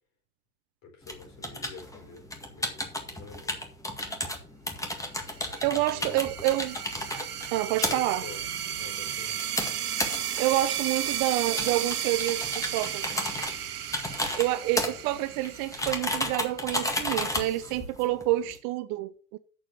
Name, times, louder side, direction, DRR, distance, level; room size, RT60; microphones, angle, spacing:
voice 1, 0.8-3.6 5.7-6.2 7.8-8.4 8.8-9.4 14.7-15.1, left 5 dB, 40° left, 4.9 m, -47 dB
sound 1, 1.0-18.6, left 1 dB, 5° left, 1.9 m, -34 dB
sound 2, 5.3-16.6, right 10 dB, 80° right, 1.1 m, -34 dB
voice 2, 5.6-6.8 7.1-7.2 7.5-8.3 10.4-13.3 14.4-19.4, right 15 dB, 40° right, 0.7 m, -28 dB
8.2 x 7.1 x 6.7 m
hypercardioid pair, 100°, 45 cm